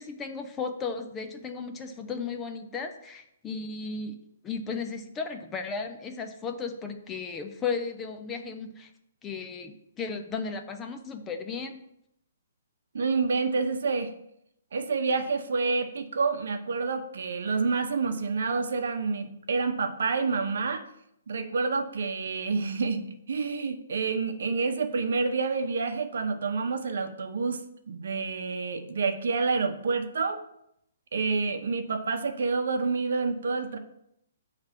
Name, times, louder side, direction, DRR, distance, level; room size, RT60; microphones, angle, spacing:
voice 1, 0.0-4.2 4.4-8.9 9.2-11.8, left 5 dB, 10° left, 5 dB, 0.3 m, -35 dB
voice 2, 12.9-14.1 14.7-20.8 21.3-30.4 31.1-33.8, right 4 dB, 65° right, 7 dB, 0.8 m, -28 dB
7.1 x 3.3 x 5.7 m, 0.76 s
hypercardioid pair, 180°, 0 cm